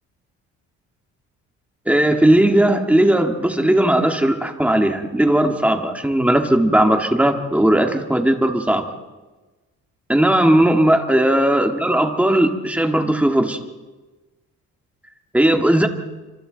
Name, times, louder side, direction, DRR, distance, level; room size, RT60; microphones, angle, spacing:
voice 1, 1.9-8.9 10.1-13.6 15.3-15.9, right 1 dB, 5° right, 4 dB, 1.9 m, -17 dB
29.5 x 26.5 x 4.0 m, 1.2 s
cardioid pair, 140°, 29 cm